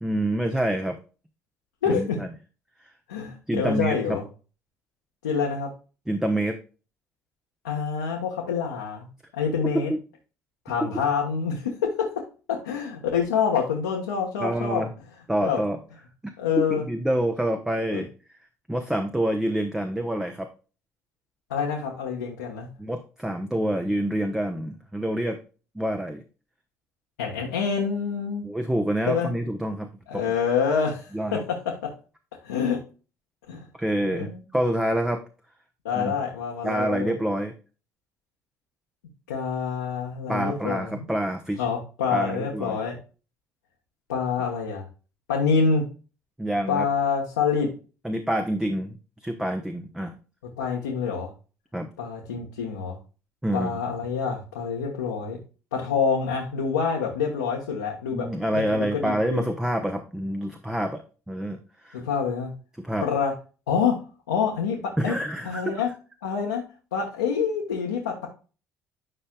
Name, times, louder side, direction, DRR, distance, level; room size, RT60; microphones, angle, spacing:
voice 1, 0.0-1.0 1.9-2.3 2.8-2.9 3.5-4.2 6.1-6.6 9.9-10.0 14.4-14.9 15.3-15.8 16.6-18.1 18.7-20.5 22.8-25.4 25.7-26.2 28.4-30.2 31.1-31.4 33.8-35.2 35.9-36.1 36.6-37.5 40.3-41.6 42.1-42.8 46.4-46.9 48.0-49.0 49.2-50.1 51.7-51.9 53.4-53.8 58.1-62.0 62.8-63.0 65.0-65.6, right 1 dB, 5° right, 6 dB, 0.9 m, -27 dB
voice 2, 1.8-2.2 3.1-4.2 5.2-5.7 7.6-9.1 9.3-9.9 10.6-12.1 12.5-14.9 15.4-15.6 16.4-16.8 17.9-18.0 21.5-22.7 27.2-28.5 29.1-29.3 30.1-31.4 31.8-31.9 32.4-32.8 33.5-33.6 34.1-34.4 35.8-37.1 39.3-41.1 41.6-43.0 44.1-44.9 45.3-45.8 46.7-47.7 50.6-51.3 52.0-53.0 53.5-55.4 55.7-59.4 61.9-62.5 63.0-63.3 63.7-63.9 64.3-65.1 65.4-65.9 66.2-66.6 66.9-68.3, left 6 dB, 75° left, -2 dB, 1.2 m, -26 dB
10.0 x 5.5 x 2.3 m, 0.35 s
figure-of-eight pair, 55°, 8 cm